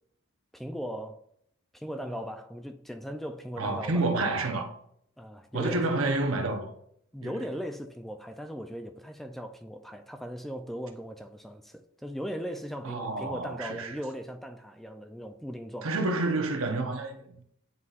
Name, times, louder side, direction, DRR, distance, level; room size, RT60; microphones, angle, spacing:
voice 1, 0.5-1.2 1.7-4.0 5.2-5.9 7.1-15.9, equal, ahead, 0.3 m, -38 dB
voice 2, 3.6-4.7 5.5-6.7 7.2-7.5 12.8-14.0 15.8-17.4, right 2 dB, 90° right, 0.8 m, -29 dB
9.4 x 4.0 x 2.4 m
head